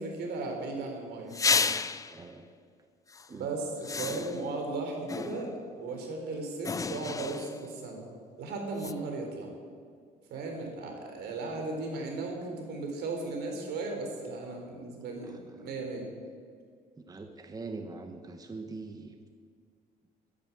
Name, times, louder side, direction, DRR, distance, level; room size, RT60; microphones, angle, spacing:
voice 1, 0.0-1.3 3.3-8.1 8.4-9.5 10.3-16.1, right 3 dB, 75° right, 2 dB, 3.9 m, -36 dB
sound 1, 1.3-2.2 3.1-3.3 3.8-4.6 5.1-5.7 6.6-7.7 8.8-8.9, left 4 dB, 20° left, 0.5 m, -31 dB
voice 2, 2.1-2.5 3.3-3.5 10.3-10.7 15.2-15.7 17.1-19.1, right 3 dB, 20° right, 5 dB, 1.1 m, -43 dB
12.5 x 10.5 x 8.4 m, 2.1 s
cardioid pair, 110°, 17 cm